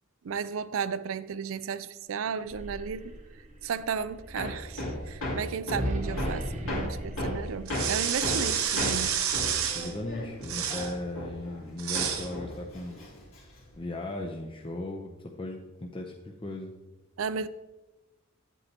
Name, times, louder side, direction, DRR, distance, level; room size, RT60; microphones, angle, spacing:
voice 1, 0.2-3.2 3.6-9.2 17.2-17.5, right 6 dB, 70° right, 0.4 m, -34 dB
sound 1, 2.3-10.4, equal, 35° right, 0.9 m, -40 dB
Hammer, 4.4-11.7 11.9-13.7, left 1 dB, 75° left, 2.6 m, -35 dB
voice 2, 6.0-6.7 9.7-13.0 13.8-16.7, left 2 dB, 25° left, 0.6 m, -37 dB
sound 2, 7.7-9.9 10.4-10.9 11.8-12.3, right 8 dB, 85° right, 0.9 m, -29 dB
9.4 x 8.2 x 2.9 m
head